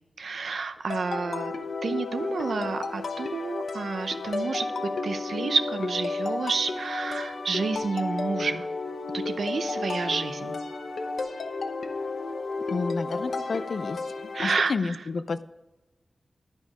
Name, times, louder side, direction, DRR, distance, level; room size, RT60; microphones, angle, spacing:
voice 1, 0.2-1.5 1.8-4.7 5.0-8.7 9.1-10.6 14.3-15.0, right 4 dB, 75° right, 9 dB, 0.7 m, -30 dB
sound 1, 0.9-14.6, left 3 dB, 80° left, 0.8 m, -32 dB
voice 2, 12.7-14.0 14.4-15.4, left 4 dB, 65° left, 14 dB, 0.4 m, -30 dB
11.5 x 5.3 x 4.8 m, 1.1 s
wide cardioid pair, 135°, 0 cm